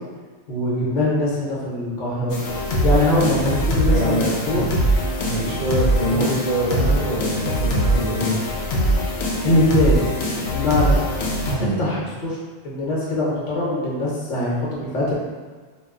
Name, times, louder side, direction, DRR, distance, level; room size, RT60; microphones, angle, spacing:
voice 1, 0.5-2.3 2.8-4.7 6.1-6.3 9.4-11.0 11.5-12.4 12.6-15.1, left 1 dB, 55° left, -6 dB, 0.9 m, -22 dB
sound 1, 2.3-11.5, equal, 85° left, 0.8 m, -22 dB
voice 2, 3.9-4.6 5.2-8.4 11.6-11.9, right 1 dB, 65° right, -8 dB, 0.9 m, -24 dB
2.3 x 2.1 x 3.6 m, 1.4 s
omnidirectional pair, 1.1 m